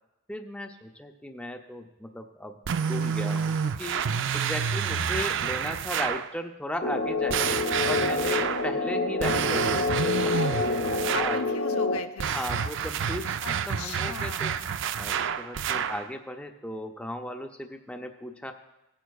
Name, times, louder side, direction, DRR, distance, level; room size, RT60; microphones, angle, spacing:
voice 1, 0.3-10.3 11.1-11.4 12.2-14.5 14.9-18.5, left 1 dB, 5° left, 4 dB, 0.5 m, -36 dB
sound 1, 2.7-6.3 7.3-8.7 9.2-11.5 12.2-16.1, right 7 dB, 55° right, 0.4 m, -29 dB
sound 2, 6.8-12.0, left 3 dB, 45° left, 0.7 m, -27 dB
voice 2, 10.3-12.7 13.4-14.6, left 4 dB, 80° left, 6 dB, 0.7 m, -37 dB
17.5 x 9.1 x 2.3 m, 0.95 s
head